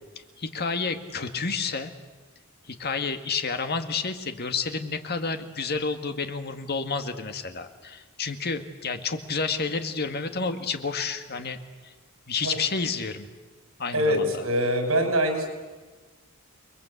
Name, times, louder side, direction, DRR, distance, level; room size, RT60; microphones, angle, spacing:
voice 1, 0.4-1.9 2.7-11.9 12.3-13.3 13.8-14.3, left 4 dB, 50° left, 7 dB, 1.9 m, -30 dB
voice 2, 13.9-15.5, equal, 80° right, 5 dB, 6.0 m, -24 dB
29.5 x 21.5 x 8.2 m, 1.3 s
head